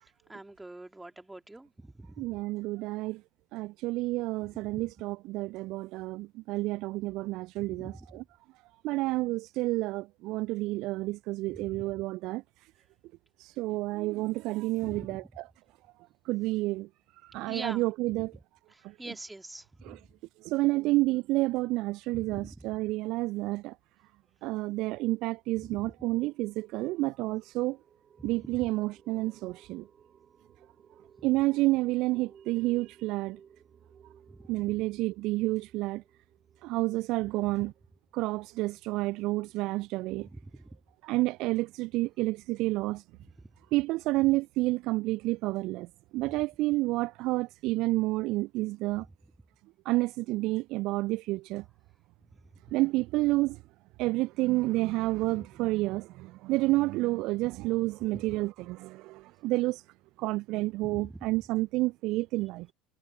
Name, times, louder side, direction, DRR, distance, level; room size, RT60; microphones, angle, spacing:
voice 1, 0.3-2.4 4.4-4.8 7.5-8.2 8.9-9.1 11.5-12.1 14.8-15.3 17.4-17.9 18.2-18.3 18.7-20.0 22.1-22.8 25.6-25.9 28.2-28.7 31.3-31.4 34.3-34.8 37.5-37.7 40.1-40.8 43.2-43.5 46.1-46.4 48.9-49.3 52.2-52.5 55.2-55.5 58.1-58.5 60.8-61.4, right 2 dB, 10° right, 3.4 m, -46 dB
voice 2, 2.2-3.2 3.5-7.9 8.8-12.4 13.4-15.2 16.3-16.9 17.2-18.3 19.9-20.0 20.4-23.7 24.4-27.8 28.2-29.8 31.2-33.4 34.5-36.0 36.6-37.7 38.1-40.3 41.0-43.0 43.7-45.9 46.1-49.1 49.9-51.6 52.7-53.6 54.0-59.8 60.2-62.7, right 20 dB, 55° right, 0.6 m, -29 dB
sound 1, 25.2-39.3, right 7 dB, 35° right, 7.1 m, -60 dB
figure-of-eight pair, 65°, 0 cm